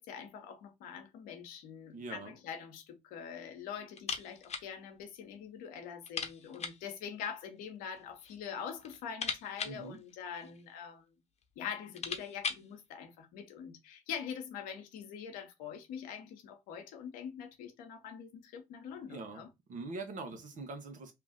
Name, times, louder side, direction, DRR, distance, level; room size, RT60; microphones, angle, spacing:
voice 1, 0.0-11.1 11.6-19.5, left 7 dB, 85° left, 0.9 m, -44 dB
voice 2, 1.9-2.3 9.6-10.0 19.1-19.4 19.7-21.1, right 3 dB, 65° right, 1.0 m, -43 dB
sound 1, 3.9-4.7 5.0-5.1 5.4-5.5 6.0-6.9 7.8-8.4 8.7-10.7 11.4-11.5 11.8-12.7, left 5 dB, 50° left, 0.9 m, -40 dB
2.9 x 2.5 x 3.6 m
hypercardioid pair, 50°, 14 cm